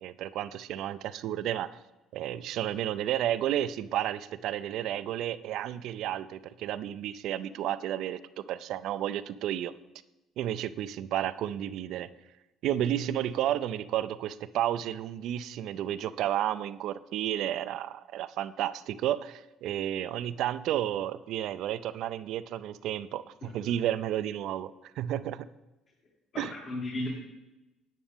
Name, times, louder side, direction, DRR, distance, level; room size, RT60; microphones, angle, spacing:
voice 1, 0.0-1.7 2.1-8.2 8.5-9.7 10.4-12.1 12.6-25.5 26.4-26.5, right 11 dB, 70° right, 15 dB, 0.4 m, -32 dB
voice 2, 23.4-23.7 26.3-27.1, left 2 dB, 50° left, -4 dB, 2.7 m, -36 dB
10.5 x 9.3 x 3.6 m, 1.0 s
hypercardioid pair, 60°, 0 cm